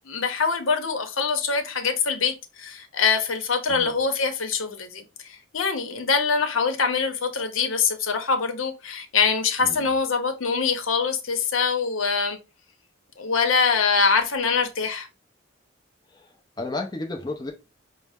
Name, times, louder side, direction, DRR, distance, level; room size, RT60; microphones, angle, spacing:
voice 1, 0.1-12.4 13.2-15.1, left 5 dB, 80° left, 0.8 m, -24 dB
voice 2, 16.1-17.5, left 2 dB, 20° left, 0.5 m, -33 dB
5.4 x 2.0 x 3.4 m
head